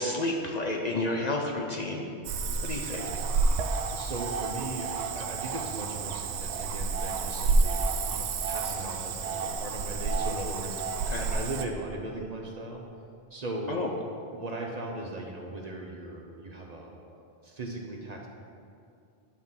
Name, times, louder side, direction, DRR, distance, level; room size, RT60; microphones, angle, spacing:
voice 1, 0.0-2.1 2.6-3.1 11.1-11.3 13.7-13.9, left 2 dB, 45° left, 0 dB, 0.6 m, -30 dB
Cricket / Frog, 2.2-11.7, right 4 dB, 90° right, 0.9 m, -30 dB
voice 2, 3.9-12.8 13.3-13.7 14.3-18.3, right 2 dB, 40° right, 0 dB, 0.8 m, -38 dB
10.0 x 6.1 x 3.7 m, 2.4 s
omnidirectional pair, 1.1 m